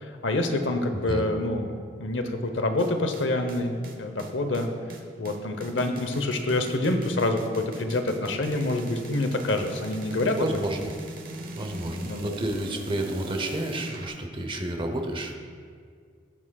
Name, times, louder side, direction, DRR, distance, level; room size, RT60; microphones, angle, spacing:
voice 1, 0.0-4.7 5.2-10.6 12.0-12.4, left 2 dB, 90° left, 6 dB, 0.8 m, -27 dB
voice 2, 0.9-1.2 10.4-11.0 11.6-15.5, right 1 dB, 30° right, 4 dB, 0.8 m, -30 dB
sound 1, 2.8-14.1, right 1 dB, 50° right, 1.0 m, -40 dB
18.5 x 6.2 x 2.3 m, 2.1 s
head